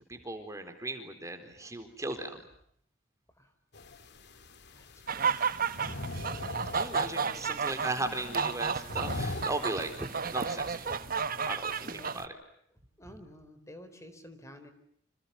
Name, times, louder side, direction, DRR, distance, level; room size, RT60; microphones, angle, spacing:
voice 1, 0.1-2.4 6.7-12.4, right 2 dB, 15° right, 7 dB, 4.1 m, -37 dB
sound 1, 3.7-11.0, left 2 dB, 60° left, 2.4 m, -42 dB
voice 2, 5.1-5.7 7.1-7.5 11.8-12.2 13.0-14.7, left 1 dB, 15° left, 8 dB, 4.2 m, -50 dB
sound 2, 5.1-12.3, right 6 dB, 50° right, 1.3 m, -32 dB
29.5 x 27.5 x 7.1 m, 0.69 s
head